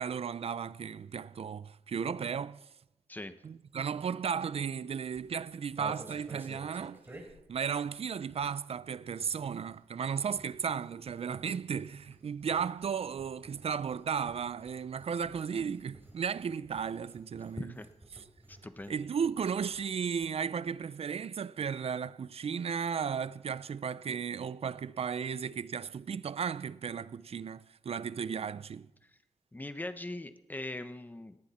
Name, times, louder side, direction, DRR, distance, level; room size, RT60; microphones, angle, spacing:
voice 1, 0.0-2.7 3.4-7.0 7.5-17.7 18.1-18.2 18.9-28.9, right 7 dB, 55° right, 0.6 m, -35 dB
sound 1, 5.1-8.8 9.0-19.9 20.2-20.3 20.5-20.8, right 1 dB, 20° right, 4.4 m, -53 dB
voice 2, 18.5-19.1 29.1-29.2 29.5-31.4, left 1 dB, 15° left, 1.1 m, -41 dB
18.5 x 17.5 x 4.4 m
wide cardioid pair, 105°, 12 cm